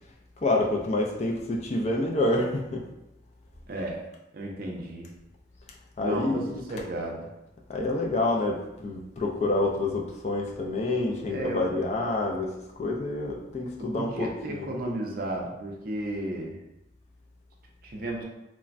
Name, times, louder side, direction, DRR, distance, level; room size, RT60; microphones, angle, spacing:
voice 1, 0.4-2.8 6.0-6.6 7.7-14.7, left 2 dB, 35° left, 0 dB, 0.3 m, -28 dB
voice 2, 3.7-4.1 4.3-5.1 6.0-6.4 6.7-7.3 11.3-11.6 14.0-16.6 17.8-18.2, right 1 dB, 50° right, 0 dB, 0.4 m, -33 dB
3.2 x 2.1 x 2.5 m, 0.94 s
head